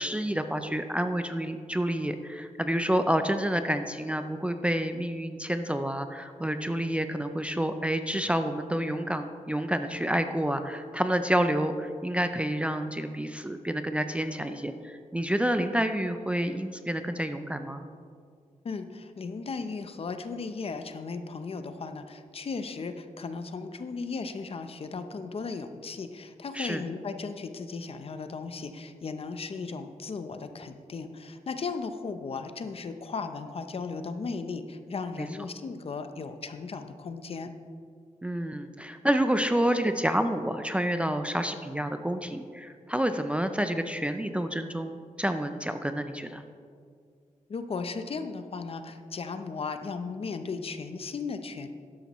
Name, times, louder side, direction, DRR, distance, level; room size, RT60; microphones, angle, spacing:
voice 1, 0.0-17.8 26.5-26.8 35.2-35.3 38.2-46.4, right 1 dB, 10° right, 7 dB, 0.4 m, -29 dB
voice 2, 18.6-37.5 47.5-51.7, left 4 dB, 45° left, 8 dB, 0.6 m, -36 dB
12.5 x 10.5 x 3.0 m, 2.2 s
wide cardioid pair, 160°, 13 cm